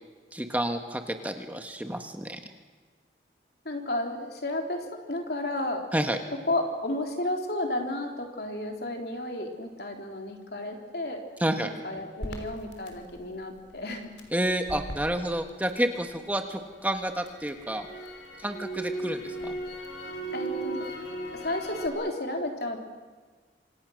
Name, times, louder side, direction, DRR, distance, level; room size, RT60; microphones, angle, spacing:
voice 1, 0.3-2.4 5.9-6.2 11.4-11.7 14.3-17.9 18.4-19.5, right 1 dB, 10° right, 5 dB, 1.4 m, -29 dB
voice 2, 3.6-5.8 6.5-11.2 11.6-14.1 20.3-20.8 21.3-22.8, left 1 dB, 60° left, 3 dB, 3.5 m, -32 dB
Crackle, 12.2-16.3 16.7-21.9, right 2 dB, 85° left, 3.7 m, -37 dB
27.0 x 26.0 x 6.4 m, 1.4 s
head